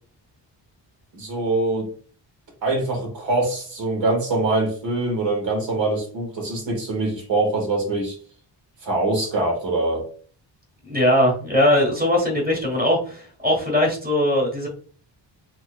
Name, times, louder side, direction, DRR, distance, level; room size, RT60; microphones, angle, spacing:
voice 1, 1.1-1.9 2.6-8.2 8.8-10.0, right 2 dB, 80° right, 1 dB, 1.8 m, -23 dB
voice 2, 10.8-14.7, left 1 dB, 20° right, -2 dB, 1.5 m, -20 dB
4.6 x 3.1 x 2.4 m, 0.43 s
wide cardioid pair, 175°, 44 cm